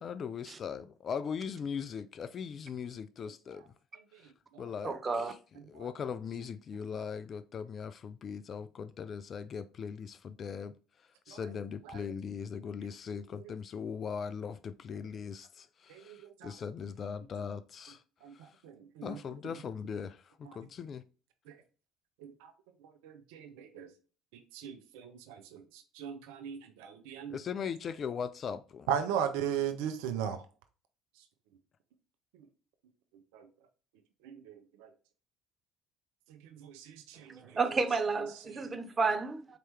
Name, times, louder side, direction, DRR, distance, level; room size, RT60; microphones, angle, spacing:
voice 1, 0.0-3.6 4.6-5.4 5.7-10.7 11.3-18.0 19.0-21.0 27.3-28.9, left 6 dB, 45° left, 0.3 m, -39 dB
voice 2, 4.8-5.3 37.6-39.6, right 4 dB, 30° right, 0.6 m, -31 dB
voice 3, 15.9-16.6 18.2-19.2 20.4-20.6 21.5-21.6 22.2-22.5 23.0-23.9 24.5-27.4 28.9-30.4 33.3-33.5 34.2-34.9 36.3-37.6 38.5-38.8, right 8 dB, 70° right, 0.6 m, -38 dB
4.5 x 2.9 x 3.2 m
hypercardioid pair, 60°, 0 cm